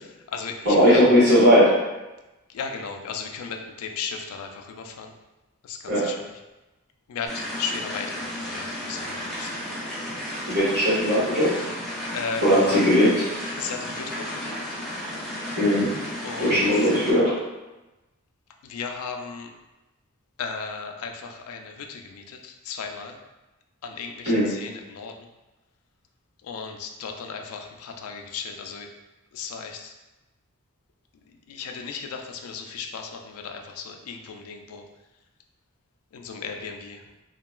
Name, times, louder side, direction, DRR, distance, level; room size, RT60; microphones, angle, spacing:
voice 1, 0.6-1.8 5.9-6.1 10.5-11.6 12.4-13.2 15.5-15.9 16.4-17.3 24.2-24.5, equal, 50° right, -13 dB, 1.4 m, -18 dB
voice 2, 2.5-5.1 5.7-6.1 7.1-8.1 8.5-9.6 12.1-12.8 13.6-14.5 16.2-16.6 18.7-19.5 20.4-23.2 23.8-25.1 26.4-28.9 29.3-29.9 31.5-34.8 36.1-37.0, left 5 dB, 75° left, 4 dB, 0.3 m, -35 dB
sound 1, 7.3-17.1, equal, ahead, 0.6 m, -33 dB
2.8 x 2.3 x 2.3 m, 1.1 s
head